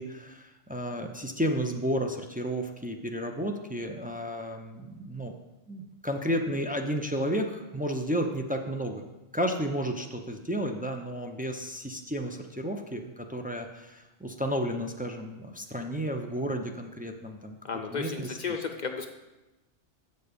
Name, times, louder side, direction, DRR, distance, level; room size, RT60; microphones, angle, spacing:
voice 1, 0.0-5.3 5.7-9.0 9.3-17.6 17.9-18.4, equal, 15° right, 3 dB, 0.3 m, -32 dB
voice 2, 17.6-19.1, left 5 dB, 50° left, 5 dB, 0.6 m, -33 dB
8.0 x 6.7 x 5.1 m, 1.0 s
omnidirectional pair, 1.2 m